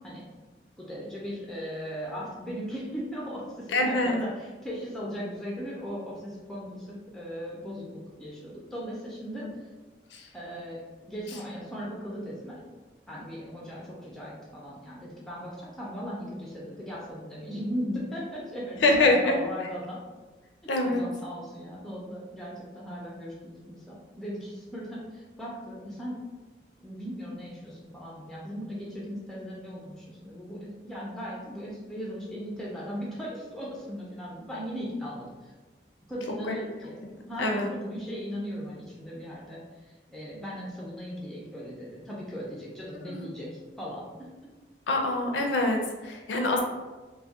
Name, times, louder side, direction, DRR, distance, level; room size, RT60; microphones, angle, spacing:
voice 1, 0.8-9.4 10.3-10.8 11.1-12.6 13.1-20.0 20.8-26.2 26.8-35.5 36.1-37.0 37.3-39.6 39.9-44.3, equal, 5° left, -5 dB, 0.4 m, -38 dB
voice 2, 3.7-4.2 9.4-9.5 10.1-10.2 18.8-19.3 20.7-21.0 36.4-36.6 37.4-37.7 43.0-43.3 44.9-46.6, left 2 dB, 85° left, 2 dB, 0.4 m, -25 dB
2.2 x 2.1 x 2.7 m, 1.3 s
head